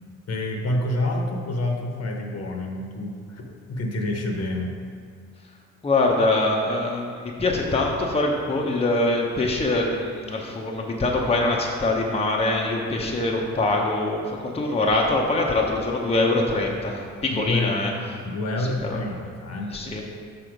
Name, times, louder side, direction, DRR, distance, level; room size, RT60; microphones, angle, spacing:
voice 1, 0.3-4.7 17.3-17.8 18.2-19.8, left 1 dB, 55° left, 2 dB, 1.0 m, -28 dB
voice 2, 5.8-17.9 18.6-19.0 19.7-20.0, left 2 dB, 20° left, -1 dB, 0.7 m, -23 dB
6.2 x 4.2 x 5.0 m, 2.1 s
cardioid pair, 90°, 30 cm